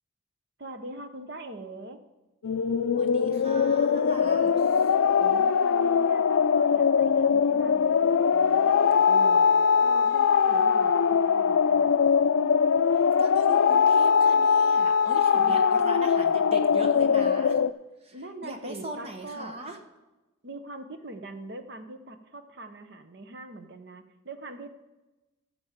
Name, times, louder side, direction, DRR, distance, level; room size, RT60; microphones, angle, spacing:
voice 1, 0.6-2.0 5.2-9.5 9.8-11.9 15.4-15.6 18.1-19.6 20.4-24.7, right 2 dB, 55° right, 8 dB, 1.0 m, -42 dB
sound 1, 2.4-17.7, left 6 dB, 85° left, 0.4 m, -22 dB
voice 2, 2.9-4.9 12.9-17.6 18.0-18.2 18.4-19.8, right 1 dB, 30° right, 5 dB, 1.1 m, -40 dB
15.5 x 7.1 x 5.1 m, 1.1 s
head